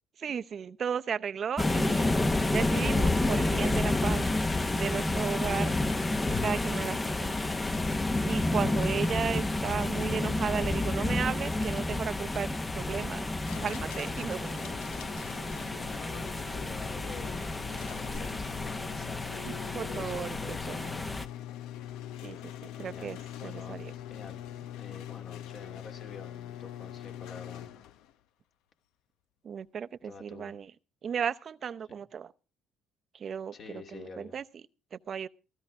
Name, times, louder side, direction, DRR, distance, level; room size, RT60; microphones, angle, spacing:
voice 1, 0.2-2.1 2.5-4.3 4.7-7.5 8.2-13.3 13.6-14.9 19.7-20.8 22.2-22.5 22.8-23.9 29.4-30.7 31.0-32.3 33.1-34.4 34.9-35.3, right 7 dB, 45° right, 0.7 m, -35 dB
sound 1, 1.6-21.3, left 2 dB, 20° left, 0.9 m, -30 dB
voice 2, 8.5-9.2 15.8-21.1 22.8-23.8 24.1-27.7 30.0-30.6 33.5-34.3, left 4 dB, 50° left, 2.9 m, -48 dB
sound 2, 13.4-28.1, left 11 dB, 80° left, 0.8 m, -43 dB
15.5 x 14.5 x 3.6 m
cardioid pair, 95°, 0 cm